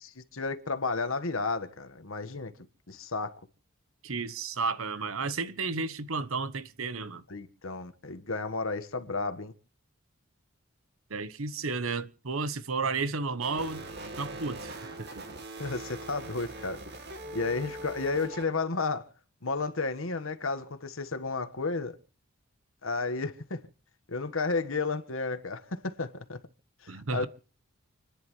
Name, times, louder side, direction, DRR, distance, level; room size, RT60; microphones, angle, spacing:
voice 1, 0.3-2.5 2.9-3.4 7.3-9.5 15.6-16.8 17.3-19.1 19.4-22.0 22.8-23.6 24.1-26.4 26.8-27.3, left 3 dB, 75° left, 1.4 m, -32 dB
voice 2, 4.0-7.2 11.1-13.8 14.2-15.2 26.9-27.3, right 4 dB, 80° right, 1.0 m, -32 dB
sound 1, 13.4-18.4, right 2 dB, 55° right, 2.5 m, -41 dB
29.5 x 10.5 x 3.1 m
head